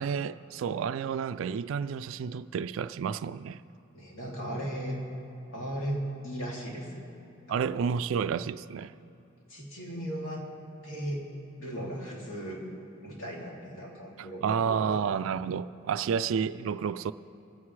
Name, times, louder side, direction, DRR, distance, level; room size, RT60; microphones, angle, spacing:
voice 1, 0.0-3.6 7.5-8.9 14.2-17.1, right 7 dB, 75° right, 0.3 m, -30 dB
voice 2, 3.9-5.0 5.5-7.1 7.5-7.9 9.5-10.5 10.8-11.2 11.6-12.6 13.0-15.0, equal, 75° left, 2.7 m, -37 dB
24.5 x 9.4 x 3.2 m
head